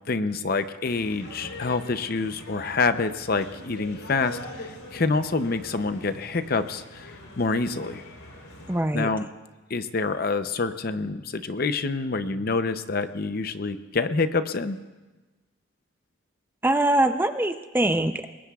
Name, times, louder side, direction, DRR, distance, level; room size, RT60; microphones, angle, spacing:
voice 1, 0.1-7.1 7.4-8.0 8.9-9.3 9.7-14.8, left 3 dB, 45° left, 10 dB, 0.6 m, -27 dB
sound 1, 0.8-8.8, left 1 dB, 90° left, 3.7 m, -43 dB
voice 2, 8.7-9.1 16.6-18.3, right 1 dB, 10° right, 8 dB, 0.5 m, -23 dB
27.0 x 21.0 x 2.4 m, 1.2 s
head